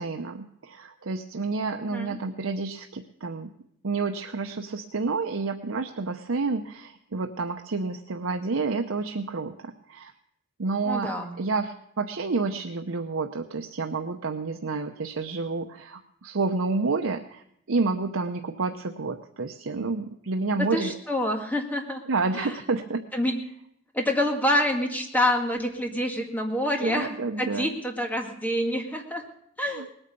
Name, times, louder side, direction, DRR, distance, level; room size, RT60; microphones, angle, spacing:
voice 1, 0.0-3.5 3.8-10.1 10.6-21.0 22.1-23.0 26.8-27.7 29.6-29.9, right 4 dB, 80° right, 5 dB, 0.8 m, -29 dB
voice 2, 10.9-11.3 20.6-22.0 22.3-22.5 23.1-23.4 23.9-29.2 29.6-29.9, left 1 dB, 10° left, 3 dB, 1.9 m, -27 dB
19.5 x 9.0 x 6.9 m, 0.73 s
head